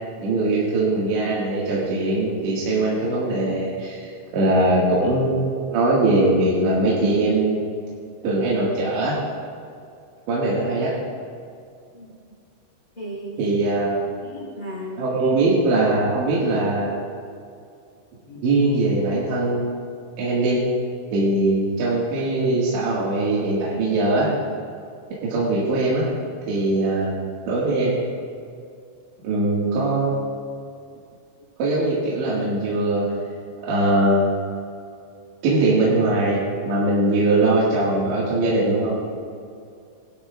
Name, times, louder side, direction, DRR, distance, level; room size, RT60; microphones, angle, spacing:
voice 1, 0.2-7.6 8.2-9.2 10.3-10.9 13.4-14.1 15.0-17.0 18.4-20.6 21.1-24.3 25.2-26.1 26.5-27.1 27.5-27.9 29.2-30.2 31.6-33.1 33.6-34.5 35.4-39.0, right 2 dB, 70° right, -7 dB, 4.0 m, -21 dB
voice 2, 12.9-13.4 14.2-15.1 18.3-18.5, equal, 20° left, -8 dB, 3.0 m, -35 dB
20.0 x 13.0 x 2.4 m, 2.4 s
omnidirectional pair, 5.7 m